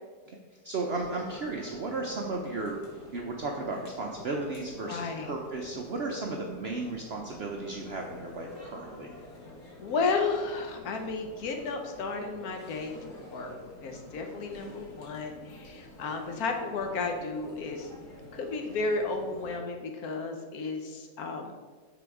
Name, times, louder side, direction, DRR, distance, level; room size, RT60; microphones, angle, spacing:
voice 1, 0.6-2.8 3.1-9.1, right 3 dB, 65° right, 0 dB, 0.6 m, -34 dB
sound 1, 0.8-19.6, left 1 dB, 90° left, 2.1 m, -49 dB
voice 2, 4.9-5.3 9.8-18.0 18.3-21.5, left 4 dB, 70° left, 4 dB, 1.2 m, -33 dB
6.8 x 3.9 x 4.8 m, 1.5 s
omnidirectional pair, 1.7 m